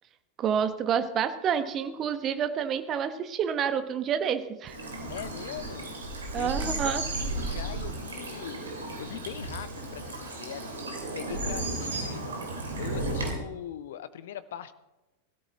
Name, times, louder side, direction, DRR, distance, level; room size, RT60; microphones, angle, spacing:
voice 1, 0.4-4.8 6.3-7.0, right 7 dB, 30° right, 9 dB, 1.1 m, -28 dB
Bird vocalization bird call bird song / Stream, 4.7-13.3, right 2 dB, 70° right, 2.9 m, -34 dB
voice 2, 5.1-6.0 6.4-8.6 9.0-12.2 12.7-14.7, left 10 dB, 60° left, 14 dB, 0.7 m, -41 dB
20.5 x 13.0 x 3.0 m, 1.0 s
figure-of-eight pair, 90°, 0 cm